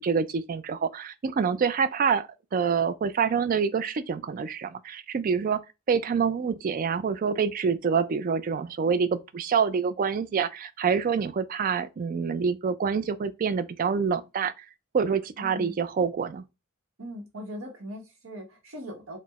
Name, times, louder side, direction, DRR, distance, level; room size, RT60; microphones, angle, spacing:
voice 1, 0.0-5.6 5.9-14.6 14.9-16.4, right 6 dB, 40° right, 0.3 m, -26 dB
voice 2, 15.4-15.8 17.0-19.2, equal, 75° right, 1.1 m, -40 dB
4.2 x 2.1 x 4.0 m
head